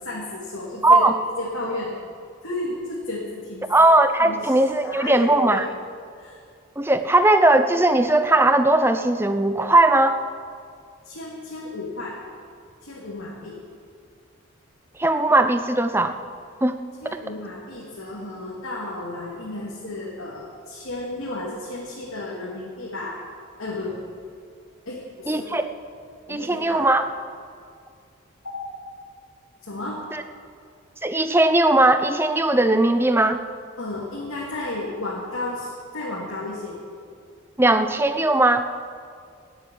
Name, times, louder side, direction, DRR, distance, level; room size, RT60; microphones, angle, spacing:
voice 1, 0.0-1.0 1.4-2.0 2.4-3.6 4.2-4.5 4.8-5.7 6.1-6.4 11.0-12.2 12.8-13.6 17.0-23.2 23.6-24.0 24.9-25.5 26.3-26.9 28.4-28.7 29.6-30.0 33.8-36.8, left 2 dB, 85° left, -5 dB, 2.7 m, -33 dB
voice 2, 0.8-1.2 3.7-5.6 6.8-10.2 15.0-16.2 16.6-16.8 25.3-25.7 26.3-27.1 30.1-30.2 31.0-33.4 37.6-38.7, right 2 dB, 10° right, 9 dB, 0.6 m, -18 dB
15.5 x 8.0 x 9.9 m, 2.2 s
head